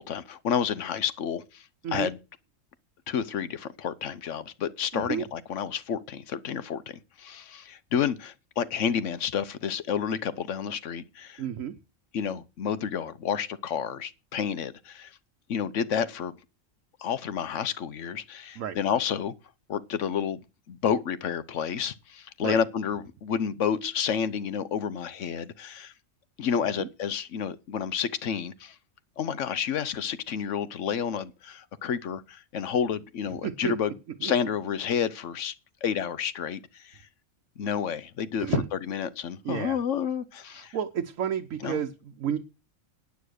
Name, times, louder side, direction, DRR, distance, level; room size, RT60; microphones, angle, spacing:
voice 1, 0.0-1.6 1.9-2.2 3.1-11.4 12.1-15.1 15.5-16.3 17.0-19.3 19.7-20.4 20.7-25.9 26.4-28.7 29.2-35.5 35.8-37.0 37.6-40.8 41.6-41.8, left 7 dB, 70° left, 1.1 m, -30 dB
voice 2, 4.9-5.2 11.4-11.7 18.6-18.8 22.4-22.6 26.8-26.9 33.4-33.7 34.2-34.3 38.4-38.6 39.4-39.8 40.7-42.4, right 9 dB, 75° right, 1.2 m, -31 dB
9.3 x 8.3 x 6.4 m
omnidirectional pair, 1.4 m